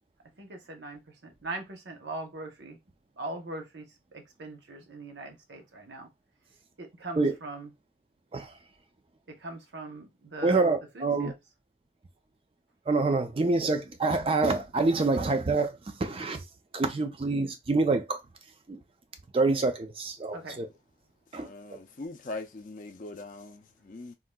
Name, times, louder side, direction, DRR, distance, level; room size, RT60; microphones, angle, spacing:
voice 1, 0.4-2.8 3.1-3.9 4.1-6.1 6.8-7.7 9.3-10.7 10.9-11.3 20.3-20.6, right 2 dB, 75° right, 0.8 m, -41 dB
voice 2, 10.4-11.3 12.9-16.4 16.7-18.2 18.7-18.8 19.3-20.7 21.3-21.5, right 3 dB, 30° right, 0.3 m, -26 dB
voice 3, 21.3-24.1, left 2 dB, 45° left, 0.4 m, -41 dB
3.7 x 2.4 x 2.2 m
head